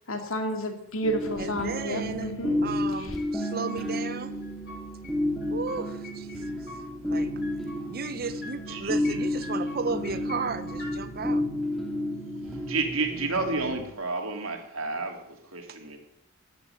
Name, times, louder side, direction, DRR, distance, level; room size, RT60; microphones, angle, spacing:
voice 1, 0.1-2.6 3.0-3.2, equal, 70° left, 2.6 m, -31 dB
sound 1, 1.0-13.9, left 1 dB, ahead, 2.4 m, -31 dB
voice 2, 1.4-2.3 2.6-4.3 5.5-6.3 7.1-7.3 7.9-11.4, right 4 dB, 45° right, 0.8 m, -34 dB
sound 2, 3.2-4.1 4.4-5.1 5.4-6.9 7.2-8.2 8.4-9.2 9.4-10.9, left 3 dB, 50° left, 3.9 m, -45 dB
voice 3, 12.7-16.0, right 3 dB, 75° right, 3.2 m, -31 dB
15.5 x 11.5 x 8.1 m
head